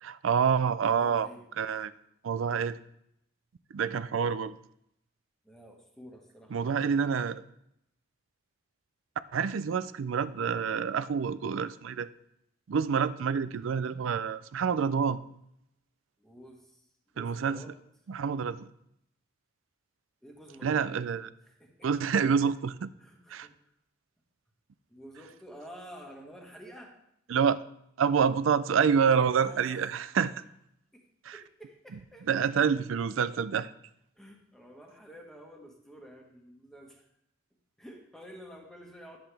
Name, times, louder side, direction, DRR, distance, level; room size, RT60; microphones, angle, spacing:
voice 1, 0.0-1.3 1.6-1.9 2.2-2.8 3.7-4.6 6.5-7.4 9.3-12.1 12.7-15.2 17.2-17.6 18.1-18.7 20.6-21.3 21.8-22.9 23.3-23.5 27.3-27.6 28.0-30.4 31.2-31.4 32.3-33.7, right 6 dB, 75° right, 16 dB, 0.4 m, -27 dB
voice 2, 0.7-1.4 5.4-6.7 16.2-16.8 17.1-17.7 20.2-21.1 21.4-21.9 23.0-23.7 24.9-26.9 29.3-29.9 30.9-31.0 31.3-32.3 32.6-32.7 34.2-37.1 37.8-39.2, equal, ahead, 1 dB, 1.3 m, -50 dB
10.5 x 7.8 x 3.4 m, 0.77 s
head